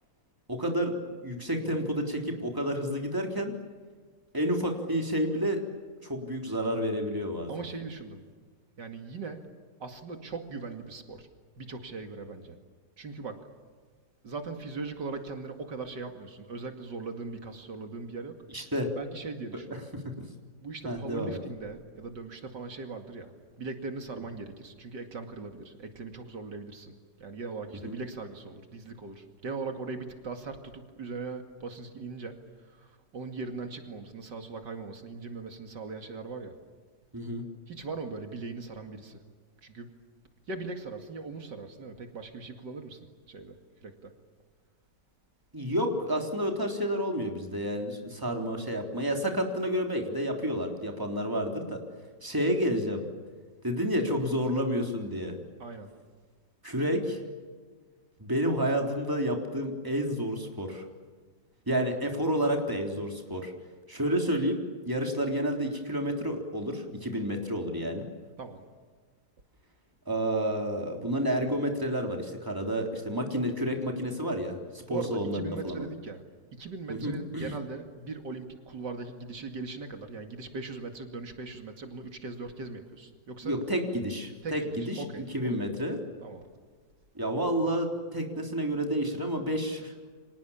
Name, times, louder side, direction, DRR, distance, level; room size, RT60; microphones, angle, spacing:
voice 1, 0.5-0.9 1.2-3.5 4.3-5.6 6.0-7.5 18.5-18.9 19.9-20.1 20.8-21.4 27.8-28.0 37.1-37.4 45.5-51.8 52.2-53.1 53.6-55.4 56.6-57.2 58.2-60.8 61.7-63.5 63.9-64.6 64.9-68.1 70.1-75.9 76.9-77.5 83.4-86.0 87.2-89.9, equal, 10° right, 2 dB, 3.6 m, -30 dB
voice 2, 7.5-8.2 8.8-9.4 9.8-11.3 11.6-12.6 13.0-13.4 14.2-18.4 19.0-19.8 20.6-23.3 23.6-26.9 27.2-36.5 37.7-39.2 39.6-39.9 40.5-43.0 43.3-44.1 55.6-55.9 68.4-68.6 74.9-76.2 76.5-83.6 84.4-85.7 86.2-86.5, right 4 dB, 75° right, 5 dB, 2.9 m, -40 dB
30.0 x 25.5 x 7.3 m, 1.5 s
omnidirectional pair, 1.9 m